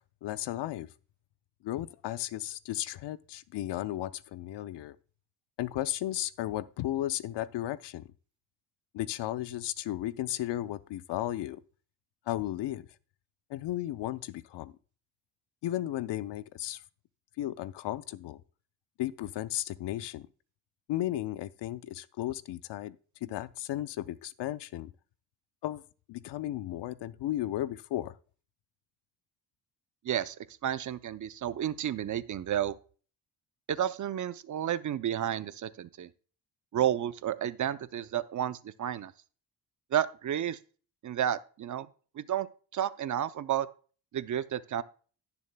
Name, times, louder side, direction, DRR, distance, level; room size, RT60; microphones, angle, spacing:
voice 1, 0.2-0.9 1.6-5.0 5.6-8.1 8.9-11.6 12.3-12.9 13.5-14.7 15.6-16.8 17.4-18.4 19.0-20.3 20.9-23.0 23.2-24.9 25.6-25.8 26.1-28.1, left 14 dB, 75° left, 0.6 m, -34 dB
voice 2, 30.0-30.4 30.6-32.7 33.7-36.1 36.7-39.1 39.9-40.6 41.0-41.9 42.2-42.5 42.7-43.7 44.1-44.8, right 10 dB, 45° right, 0.6 m, -31 dB
17.0 x 7.1 x 2.2 m
cardioid pair, 115°, 42 cm